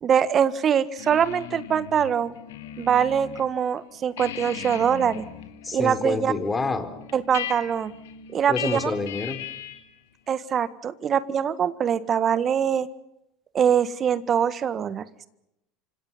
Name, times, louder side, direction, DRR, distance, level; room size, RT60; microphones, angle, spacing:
voice 1, 0.0-2.3 2.8-5.2 5.7-6.3 7.1-7.9 8.3-8.8 10.3-12.9 13.5-15.0, right 8 dB, 35° right, 15 dB, 1.7 m, -23 dB
sound 1, 1.0-3.5 3.8-9.9, left 9 dB, 75° left, 3.1 m, -38 dB
voice 2, 5.6-6.9 8.5-9.4, left 3 dB, 20° left, 8 dB, 4.2 m, -27 dB
27.5 x 26.0 x 5.7 m, 0.84 s
hypercardioid pair, 80°, 0 cm